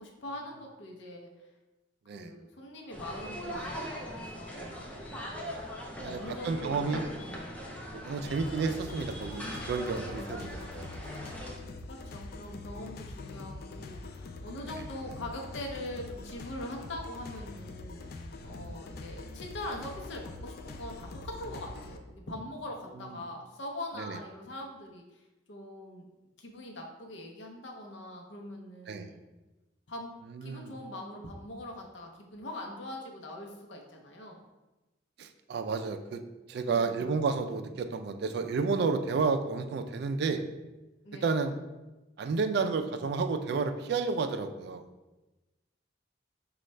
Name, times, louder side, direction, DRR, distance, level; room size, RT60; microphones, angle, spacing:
voice 1, 0.0-1.5 2.1-4.8 6.0-6.8 7.2-7.5 10.1-10.7 11.9-25.2 25.5-26.1 26.4-29.2 29.9-30.1 30.4-34.4 36.7-37.1 41.0-41.3, left 1 dB, 80° left, 1 dB, 0.7 m, -42 dB
sound 1, 2.9-11.6, equal, 10° left, 0.5 m, -40 dB
voice 2, 6.0-7.1 7.9-10.9 14.7-14.8 18.4-18.8 24.0-24.2 28.9-29.1 30.4-30.7 35.2-36.2 36.5-40.4 41.2-41.6 42.2-44.8, right 4 dB, 60° right, 8 dB, 0.3 m, -31 dB
sound 2, 8.2-22.0, left 3 dB, 55° left, 0.3 m, -44 dB
5.2 x 2.3 x 3.2 m, 1.1 s
head